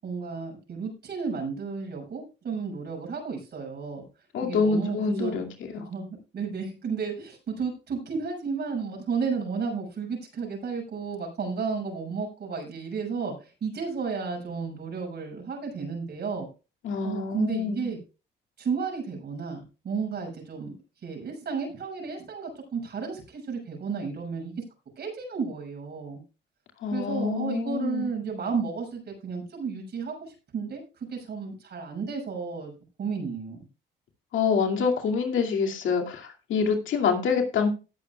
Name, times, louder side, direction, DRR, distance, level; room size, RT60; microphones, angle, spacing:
voice 1, 0.0-4.1 4.4-5.4 5.8-16.5 17.0-18.0 18.6-20.7 21.0-24.5 25.0-26.2 26.9-32.7 33.0-33.7, right 5 dB, 55° right, 1 dB, 6.5 m, -33 dB
voice 2, 4.3-5.9 16.8-17.8 26.8-28.0 34.3-37.7, left 5 dB, 75° left, 3 dB, 2.4 m, -26 dB
18.5 x 9.0 x 2.3 m, 0.32 s
cardioid pair, 90°, 20 cm